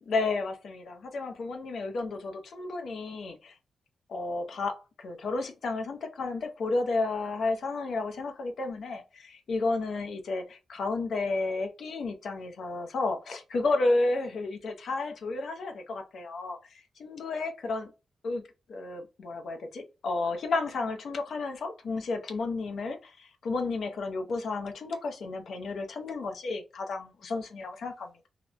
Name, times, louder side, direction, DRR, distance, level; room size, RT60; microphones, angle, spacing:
voice 1, 0.1-3.5 4.1-16.6 17.0-17.9 18.2-28.3, left 3 dB, 70° left, 0.6 m, -32 dB
2.9 x 2.0 x 3.5 m
wide cardioid pair, 115°, 0 cm